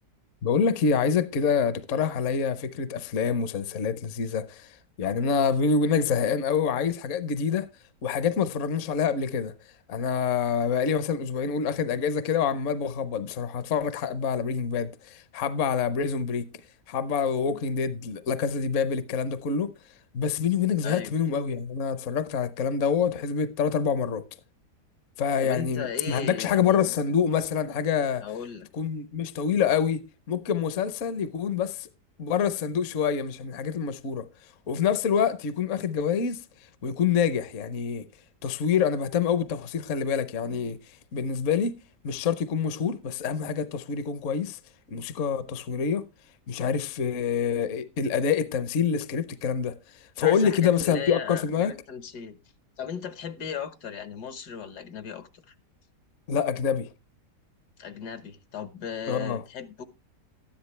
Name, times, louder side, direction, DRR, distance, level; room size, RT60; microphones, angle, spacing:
voice 1, 0.4-4.7 5.0-7.7 8.0-9.5 9.9-16.5 16.9-19.7 20.1-24.2 25.2-28.2 28.8-31.9 32.2-34.3 34.7-36.4 36.8-38.1 38.4-40.8 41.1-41.7 42.0-44.6 44.9-46.1 46.5-49.7 50.2-51.7 56.3-56.9 59.1-59.4, left 6 dB, 55° left, 1.0 m, -26 dB
voice 2, 25.4-26.9 28.2-28.7 50.2-52.4 52.8-55.5 57.8-59.8, left 7 dB, 75° left, 1.7 m, -37 dB
13.0 x 10.5 x 3.2 m
omnidirectional pair, 1.7 m